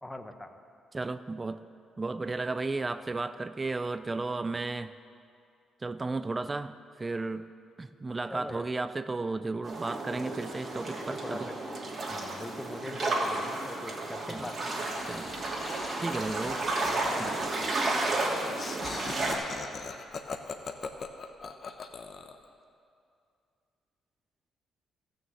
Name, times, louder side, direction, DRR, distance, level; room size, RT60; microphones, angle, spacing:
voice 1, 0.0-0.6 8.3-8.7 9.9-10.4 10.7-11.5 12.1-14.8 16.9-17.3 18.1-18.3, left 1 dB, 10° left, 7 dB, 1.0 m, -42 dB
voice 2, 0.9-1.6 2.0-4.9 5.8-7.5 7.8-11.5 14.3-14.5 15.1-15.3 16.0-16.6 17.2-17.4, right 3 dB, 25° right, 12 dB, 0.4 m, -34 dB
sound 1, 9.6-19.4, right 2 dB, 45° right, 2.6 m, -32 dB
Laughter, 14.9-22.4, left 5 dB, 50° left, 0.9 m, -42 dB
14.5 x 6.4 x 7.8 m, 2.4 s
cardioid pair, 90°, 0 cm